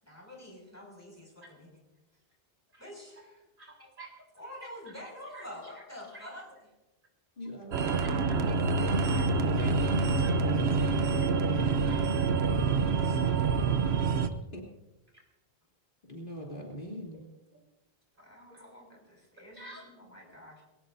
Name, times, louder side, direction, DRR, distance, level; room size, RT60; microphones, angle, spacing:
voice 1, 0.0-1.8 2.8-3.4 4.3-6.6 8.5-9.0 10.5-10.9 12.6-13.4 18.1-20.6, left 1 dB, 15° left, -2 dB, 6.1 m, -48 dB
voice 2, 3.6-4.1 5.3-5.4 6.1-6.3 8.4-8.6 9.1-9.3 9.5-9.7 10.2-10.4 11.5-12.1 12.4-12.5 19.5-19.8, right 2 dB, 55° right, -1 dB, 4.4 m, -48 dB
voice 3, 7.4-8.0 10.5-11.3 14.5-14.6 16.1-17.2, equal, 55° left, -2 dB, 3.3 m, -42 dB
sound 1, 7.7-14.3, right 4 dB, 90° right, 1.1 m, -26 dB
22.0 x 18.0 x 2.7 m, 1.0 s
omnidirectional pair, 1.0 m